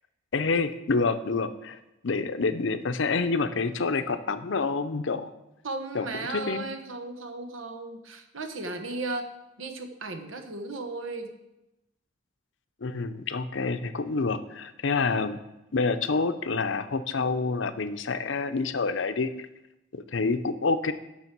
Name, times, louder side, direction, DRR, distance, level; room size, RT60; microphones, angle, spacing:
voice 1, 0.3-5.3 5.9-6.1 6.3-6.7 12.8-15.4 15.7-19.3 19.9-20.9, left 4 dB, 75° left, 10 dB, 0.6 m, -27 dB
voice 2, 5.6-9.3 9.6-11.3, right 3 dB, 90° right, 7 dB, 1.1 m, -35 dB
9.7 x 6.3 x 6.0 m, 0.93 s
head